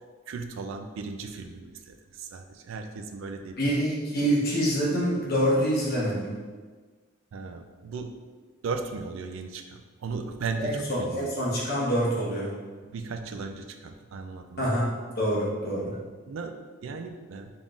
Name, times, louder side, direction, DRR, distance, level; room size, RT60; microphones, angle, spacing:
voice 1, 0.3-3.7 7.3-8.1 8.6-11.3 12.8-14.8 16.3-16.6 16.8-17.5, right 4 dB, 75° right, 6 dB, 0.4 m, -36 dB
voice 2, 3.6-6.3 10.6-12.5 14.6-15.9, equal, 50° left, -6 dB, 1.1 m, -26 dB
3.9 x 3.6 x 2.4 m, 1.4 s
head